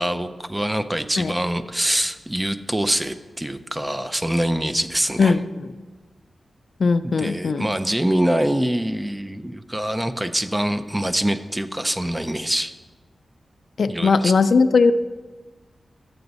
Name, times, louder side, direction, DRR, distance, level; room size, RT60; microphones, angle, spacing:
voice 1, 0.0-5.4 7.0-12.7 13.9-14.3, right 1 dB, 10° right, 10 dB, 0.4 m, -24 dB
voice 2, 5.2-5.7 6.8-7.7 13.8-14.9, left 4 dB, 60° left, 12 dB, 0.3 m, -19 dB
10.5 x 7.8 x 4.0 m, 1.3 s
wide cardioid pair, 145°, 0 cm